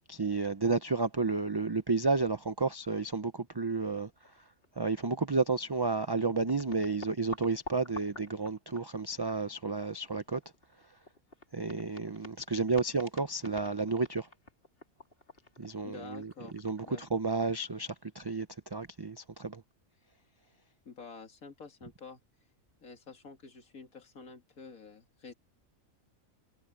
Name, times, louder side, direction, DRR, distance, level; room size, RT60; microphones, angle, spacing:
voice 1, 0.1-4.1 4.8-10.4 11.5-14.3 15.6-18.5 18.7-19.6, right 4 dB, 25° right, 0.5 m, -31 dB
sound 1, 3.9-4.4 4.6-4.7 5.6-5.7 5.9-9.7 10.1-17.7, left 2 dB, 40° left, 4.1 m, -49 dB
voice 2, 15.8-16.6 16.9-17.0 20.9-22.2 22.8-25.3, left 5 dB, 85° left, 2.6 m, -49 dB
omnidirectional pair, 1.4 m